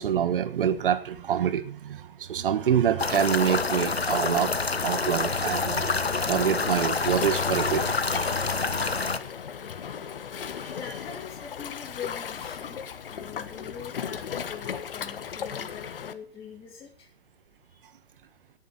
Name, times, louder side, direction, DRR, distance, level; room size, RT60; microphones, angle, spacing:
voice 1, 0.0-4.5 4.8-5.9 6.3-8.3, right 9 dB, 60° right, 13 dB, 1.5 m, -26 dB
sound 1, 3.0-9.2, left 4 dB, 90° left, 1.2 m, -27 dB
Waves surf, 5.8-16.1, left 7 dB, 65° left, 1.4 m, -36 dB
voice 2, 10.7-12.8 13.1-17.1 17.7-17.9, left 7 dB, 20° left, -3 dB, 3.0 m, -43 dB
18.0 x 9.3 x 4.3 m, 0.40 s
figure-of-eight pair, 115°, 30 cm